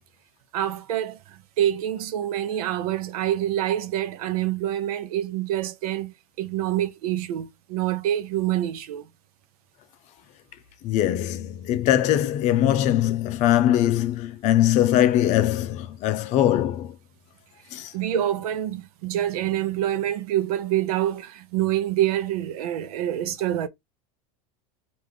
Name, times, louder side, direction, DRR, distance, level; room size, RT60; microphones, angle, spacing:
voice 1, 0.5-9.1 17.9-23.7, right 12 dB, 80° right, 0.7 m, -26 dB
voice 2, 10.8-16.9 17.7-17.9, left 12 dB, 40° left, 0.6 m, -21 dB
4.8 x 2.6 x 3.6 m
supercardioid pair, 150°, 19 cm